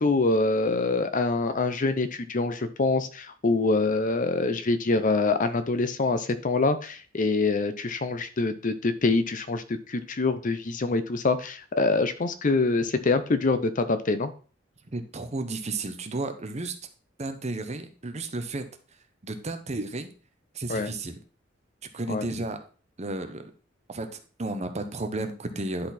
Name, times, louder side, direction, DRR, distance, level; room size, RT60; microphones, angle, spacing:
voice 1, 0.0-14.3 20.7-20.9 22.1-22.3, left 3 dB, 40° left, 11 dB, 0.6 m, -25 dB
voice 2, 14.9-16.8 17.2-18.7 19.2-20.1 20.5-21.2 21.9-22.6 23.0-23.5 23.9-25.9, right 2 dB, 35° right, 7 dB, 0.9 m, -33 dB
10.5 x 4.2 x 4.2 m, 0.39 s
head